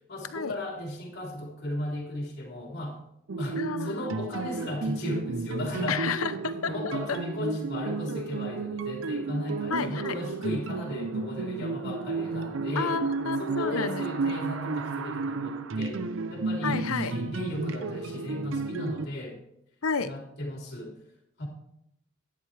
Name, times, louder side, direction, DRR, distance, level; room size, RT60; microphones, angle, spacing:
voice 1, 0.1-3.0 3.4-6.2 6.6-13.0 13.4-16.0 16.3-19.4 20.0-21.0 21.4-21.5, left 1 dB, 50° left, -1 dB, 3.5 m, -36 dB
sound 1, 3.3-19.1, right 3 dB, 60° right, 0.6 m, -32 dB
voice 2, 3.6-4.1 5.9-7.2 9.7-10.2 12.7-14.3 16.6-17.1 19.8-20.1, left 5 dB, 80° left, 12 dB, 0.8 m, -31 dB
13.0 x 10.5 x 3.3 m, 0.80 s
head